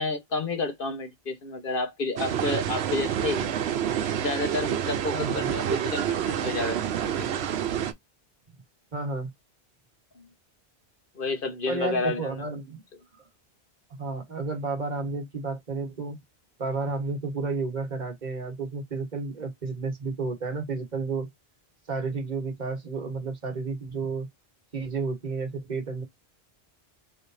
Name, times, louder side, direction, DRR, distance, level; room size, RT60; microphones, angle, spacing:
voice 1, 0.0-3.6 4.1-6.8 11.1-12.3, left 3 dB, 60° left, 1.3 m, -30 dB
sound 1, 2.2-7.9, right 9 dB, 90° right, 0.9 m, -28 dB
voice 2, 5.1-5.5 8.9-9.3 11.7-12.8 14.0-16.2 16.6-21.3 21.9-24.3 24.7-26.0, right 4 dB, 45° right, 1.5 m, -31 dB
3.9 x 3.3 x 2.6 m
omnidirectional pair, 1.1 m